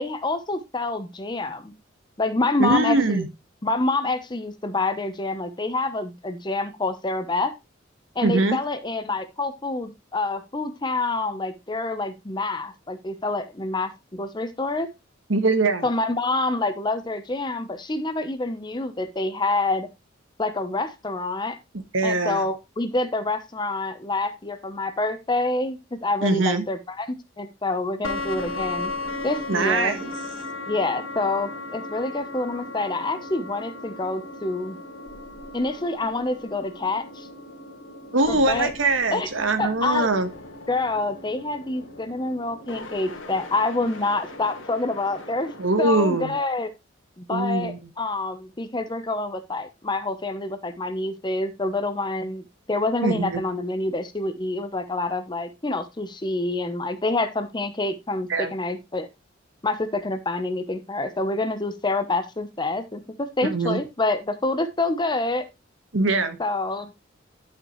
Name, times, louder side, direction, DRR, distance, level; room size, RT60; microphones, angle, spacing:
voice 1, 0.0-1.7 2.2-3.2 3.6-7.5 8.2-14.9 15.8-19.9 20.4-21.6 22.0-27.1 27.4-28.9 29.2-30.0 30.7-34.8 35.5-37.3 38.3-38.7 39.1-39.3 39.6-40.1 40.7-46.7 47.2-59.1 59.6-65.5 66.4-66.9, left 2 dB, 20° left, 0.8 m, -27 dB
voice 2, 2.6-3.3 8.2-8.6 15.3-15.8 21.9-22.4 26.2-26.6 29.5-30.1 38.1-40.3 45.6-46.3 47.3-47.9 53.0-53.4 58.3-58.5 63.4-63.8 65.9-66.4, right 2 dB, 80° right, 1.4 m, -22 dB
sound 1, 28.0-46.4, left 2 dB, 75° left, 1.7 m, -37 dB
11.5 x 5.6 x 3.1 m
head